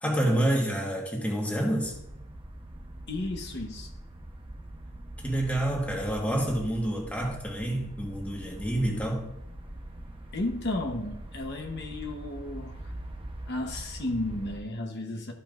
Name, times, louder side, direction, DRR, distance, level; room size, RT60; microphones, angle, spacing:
voice 1, 0.0-1.9 5.2-9.3, right 1 dB, 5° left, -1 dB, 1.4 m, -28 dB
sound 1, 1.8-14.6, right 1 dB, 25° right, 0.9 m, -43 dB
voice 2, 3.1-3.9 10.3-12.9 13.5-15.3, left 2 dB, 55° left, 2 dB, 1.0 m, -33 dB
13.5 x 5.7 x 2.5 m, 0.83 s
head